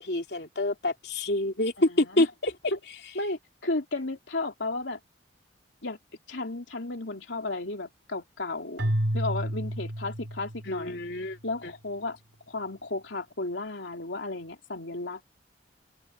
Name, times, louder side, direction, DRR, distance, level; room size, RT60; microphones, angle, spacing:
voice 1, 0.0-2.5 10.6-11.4 11.6-11.7, left 1 dB, 60° left, 3.0 m, -27 dB
voice 2, 1.8-2.3 3.1-5.0 5.8-6.0 6.3-11.0 11.4-12.2 12.5-15.2, left 2 dB, 80° left, 3.1 m, -34 dB
Keyboard (musical), 8.8-11.0, right 1 dB, 80° right, 3.4 m, -30 dB
open air
head